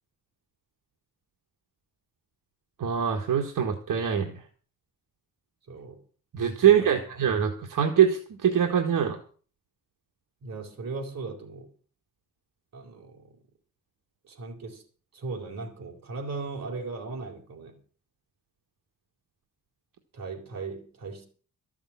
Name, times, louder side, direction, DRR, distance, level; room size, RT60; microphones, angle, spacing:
voice 1, 2.8-4.3 6.3-9.2, right 8 dB, 75° right, 1.8 m, -23 dB
voice 2, 5.7-6.0 6.6-7.0 10.4-11.7 12.7-13.4 14.2-14.8 15.1-17.8 20.1-21.3, right 3 dB, 50° right, 4.2 m, -38 dB
13.5 x 7.0 x 8.6 m
wide cardioid pair, 170°, 33 cm